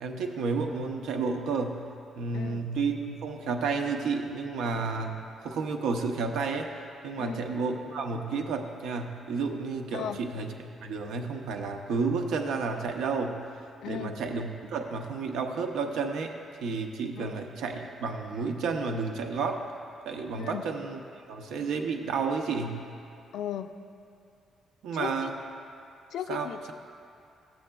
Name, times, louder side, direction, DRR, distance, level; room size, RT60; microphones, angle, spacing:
voice 1, 0.0-1.8 2.2-6.7 7.0-13.4 13.9-16.4 16.6-19.6 20.1-21.0 21.3-22.8 24.8-25.4 26.3-26.7, right 4 dB, 85° right, 4 dB, 0.6 m, -31 dB
voice 2, 2.3-2.6 7.2-7.4 9.9-10.2 13.8-14.1 17.2-17.5 20.4-20.6 23.3-23.7 24.9-25.3 26.1-26.7, left 9 dB, 70° left, 9 dB, 0.3 m, -36 dB
14.0 x 7.6 x 2.3 m, 2.5 s
cardioid pair, 135°, 0 cm